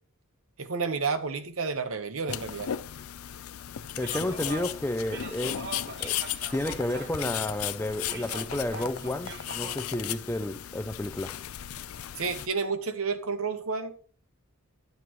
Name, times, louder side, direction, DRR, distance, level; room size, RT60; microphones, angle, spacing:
voice 1, 0.6-2.7 12.2-14.0, right 5 dB, 80° right, 1.0 m, -30 dB
sound 1, 2.3-12.5, left 11 dB, 90° left, 0.4 m, -36 dB
voice 2, 4.0-5.7 6.0-6.2 6.5-11.3, left 1 dB, 10° left, 0.4 m, -31 dB
sound 2, 4.0-9.8, right 4 dB, 55° right, 1.1 m, -43 dB
11.0 x 6.8 x 3.1 m
head